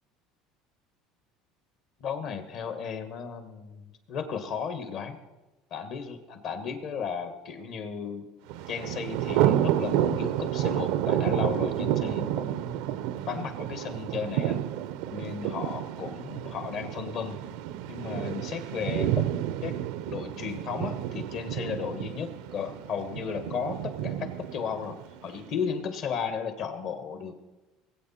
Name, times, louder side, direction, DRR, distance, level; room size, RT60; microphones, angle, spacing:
voice 1, 2.0-5.2 5.7-8.3 8.7-12.8 13.3-14.6 15.1-17.4 17.9-19.7 20.1-27.3, left 6 dB, 55° left, 8 dB, 1.5 m, -35 dB
Thunder, 8.5-25.5, right 12 dB, 75° right, 0.5 m, -30 dB
19.0 x 8.3 x 4.3 m, 1.1 s
supercardioid pair, 110°, 0 cm